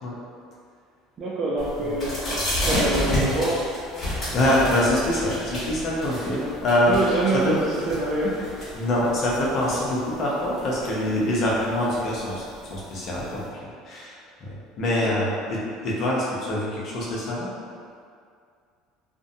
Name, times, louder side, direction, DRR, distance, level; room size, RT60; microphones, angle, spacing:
voice 1, 1.2-2.1 2.7-3.6 6.3-6.5 6.8-8.4 15.0-15.2, right 2 dB, 40° right, -7 dB, 0.4 m, -26 dB
sound 1, 1.6-13.5, equal, 30° left, 1.0 m, -31 dB
voice 2, 4.3-7.0 7.3-7.5 8.7-12.4 12.7-17.5, left 1 dB, 50° left, -5 dB, 0.7 m, -25 dB
2.5 x 2.1 x 2.6 m, 2.2 s
supercardioid pair, 110°, 0 cm